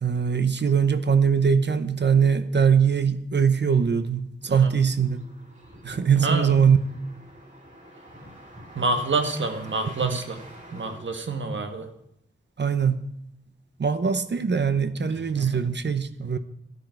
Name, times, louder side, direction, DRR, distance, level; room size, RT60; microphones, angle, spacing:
voice 1, 0.0-5.2 5.8-6.8 9.8-10.2 12.6-13.0 13.8-16.4, right 6 dB, 65° right, 0.9 m, -22 dB
sound 1, 4.4-11.0, right 1 dB, 40° right, 5.4 m, -46 dB
voice 2, 6.1-6.5 8.7-10.4 10.7-11.9 15.4-15.6, right 3 dB, 90° right, 1.4 m, -27 dB
13.5 x 10.5 x 4.7 m
wide cardioid pair, 65°, 19 cm